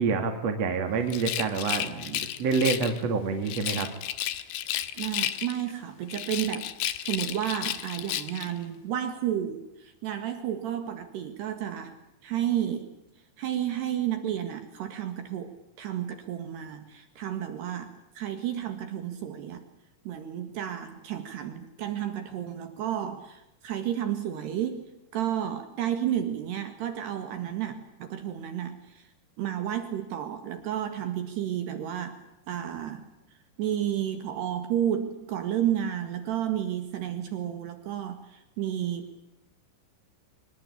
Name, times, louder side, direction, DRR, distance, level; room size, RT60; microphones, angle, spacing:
voice 1, 0.0-3.9, right 5 dB, 45° right, 6 dB, 2.5 m, -27 dB
Rattle, 1.1-3.0 3.5-5.7 6.1-8.5, left 12 dB, 75° left, 3.6 m, -32 dB
voice 2, 5.0-12.0 12.2-12.9 13.4-19.6 20.1-29.1 29.4-32.2 32.5-33.1 33.6-39.2, right 10 dB, 65° right, 8 dB, 3.6 m, -32 dB
25.5 x 21.5 x 8.6 m, 0.89 s
omnidirectional pair, 5.7 m